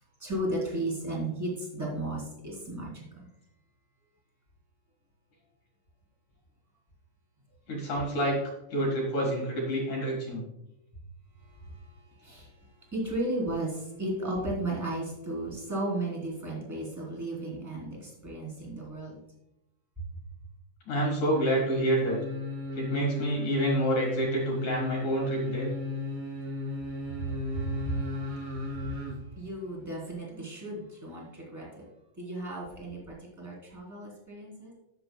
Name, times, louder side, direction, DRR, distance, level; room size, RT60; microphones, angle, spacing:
voice 1, 0.2-3.3 11.5-12.5 12.9-19.2 27.2-31.8 32.2-34.7, right 1 dB, 5° right, -4 dB, 2.2 m, -35 dB
voice 2, 7.7-8.4 8.7-10.4 20.9-22.2 22.7-25.7, right 1 dB, 55° left, -1 dB, 2.7 m, -28 dB
sound 1, 21.3-29.2 29.5-29.6, left 3 dB, 90° right, 6.4 m, -35 dB
13.5 x 7.7 x 2.3 m, 0.86 s
omnidirectional pair, 5.3 m